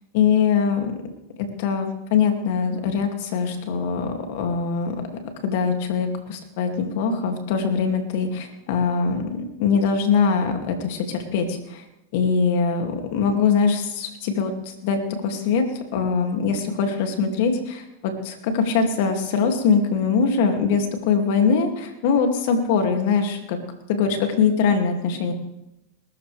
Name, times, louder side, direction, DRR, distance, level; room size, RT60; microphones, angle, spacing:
voice 1, 0.1-0.9 1.4-4.9 5.4-11.8 12.1-14.5 14.8-15.6 15.9-23.6 23.9-25.3, left 5 dB, 65° left, 4 dB, 2.5 m, -22 dB
21.0 x 13.5 x 3.5 m, 0.88 s
hypercardioid pair, 120°, 0 cm